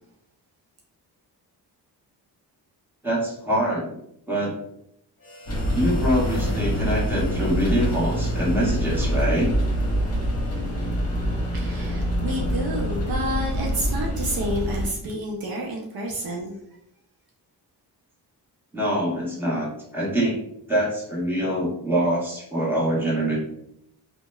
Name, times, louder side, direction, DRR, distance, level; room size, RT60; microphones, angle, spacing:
voice 1, 3.0-4.0 4.3-4.6 5.7-9.6 18.7-20.4 20.7-23.4, right 1 dB, 5° right, -5 dB, 1.1 m, -24 dB
Harmonica, 5.2-11.2, equal, 20° left, 1.3 m, -46 dB
sound 1, 5.5-14.9, equal, 35° left, 0.9 m, -25 dB
voice 2, 11.5-16.6, right 1 dB, 60° right, -1 dB, 0.6 m, -29 dB
2.8 x 2.1 x 2.2 m, 0.75 s
cardioid pair, 70°, 41 cm